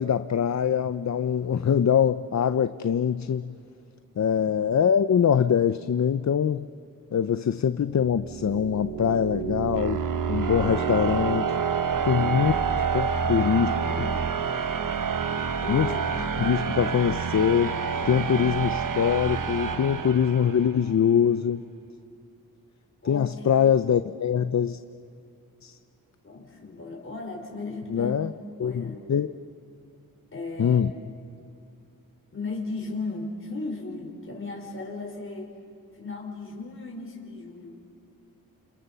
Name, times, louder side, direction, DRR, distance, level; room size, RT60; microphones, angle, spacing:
voice 1, 0.0-3.5 4.2-6.7 7.1-11.6 12.0-12.5 12.9-13.7 14.0-14.1 15.7-15.9 16.4-17.8 18.1-21.6 23.0-24.8 25.6-25.8 27.9-28.3 28.6-29.3 30.6-30.9, left 8 dB, 50° left, 12 dB, 0.6 m, -23 dB
sound 1, 7.9-20.8, right 6 dB, 65° right, 1.3 m, -28 dB
voice 2, 12.1-12.8 13.3-14.2 15.6-16.1 23.0-23.5 26.2-28.2 28.6-29.0 30.3-30.8 32.3-35.5 35.9-37.8, left 3 dB, 35° left, -1 dB, 5.3 m, -36 dB
30.0 x 28.0 x 6.9 m, 2.4 s
wide cardioid pair, 110°, 35 cm